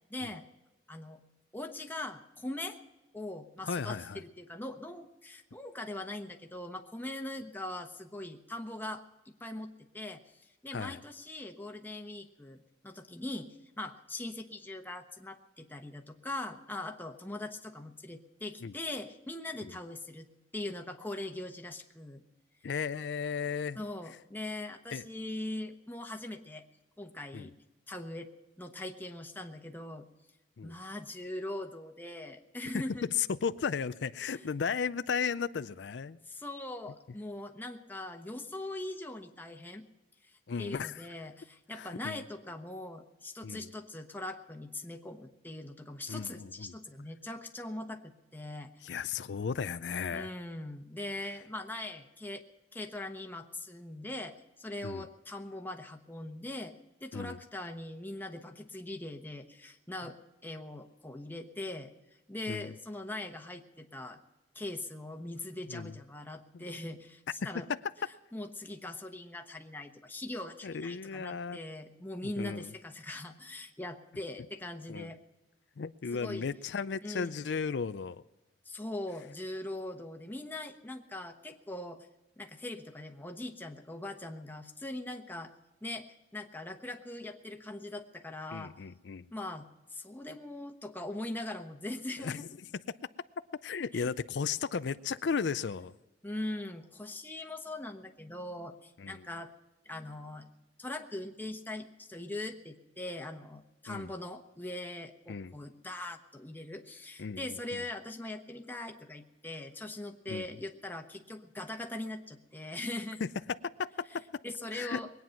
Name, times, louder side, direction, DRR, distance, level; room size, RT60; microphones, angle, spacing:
voice 1, 0.1-0.4 0.9-1.2 1.5-2.8 3.1-20.3 20.5-22.2 23.7-26.7 27.0-27.5 27.9-28.3 28.6-30.1 30.6-33.0 34.2-34.5 36.3-39.9 40.2-49.0 50.1-52.4 52.7-61.9 62.3-64.2 64.5-67.7 68.3-75.2 76.1-76.5 77.0-77.4 78.6-82.1 82.4-85.5 85.8-86.1 86.3-88.7 89.3-92.4 93.9-94.1 96.2-99.5 99.8-100.5 100.8-113.2 114.4-115.1, left 1 dB, 10° left, 1.1 m, -41 dB
voice 2, 3.6-4.2 10.7-11.0 18.6-18.7 22.6-23.8 24.9-25.0 27.3-27.5 30.6-30.7 32.7-32.8 33.2-36.2 40.5-41.0 41.7-42.2 43.4-43.7 46.1-46.7 48.8-50.3 51.2-51.3 54.8-55.1 57.1-57.4 62.5-62.7 65.7-66.0 66.5-66.7 67.4-67.8 70.6-71.6 72.2-72.7 74.9-75.1 75.8-78.2 88.5-89.3 92.2-92.5 93.6-95.9 99.0-99.2 103.9-104.1 105.3-105.5 107.2-107.4 107.7-107.8 110.3-110.5 113.6-114.2 114.7-115.0, left 6 dB, 85° left, 0.5 m, -35 dB
21.5 x 9.3 x 5.8 m
head